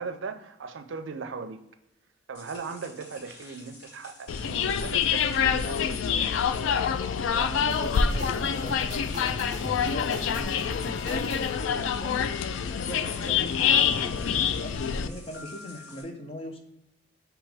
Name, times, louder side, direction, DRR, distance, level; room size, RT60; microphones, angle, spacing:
voice 1, 0.0-1.6 2.3-6.0, right 5 dB, 85° right, 9 dB, 0.5 m, -38 dB
sound 1, 2.3-16.0, left 2 dB, 55° left, 1.5 m, -49 dB
sound 2, 4.3-15.1, left 7 dB, 85° left, 0.3 m, -26 dB
voice 2, 7.3-12.2 12.6-16.6, equal, 30° left, 3 dB, 0.7 m, -40 dB
sound 3, 7.7-11.5, right 1 dB, 20° right, 1.1 m, -40 dB
5.2 x 3.0 x 3.4 m, 0.87 s
head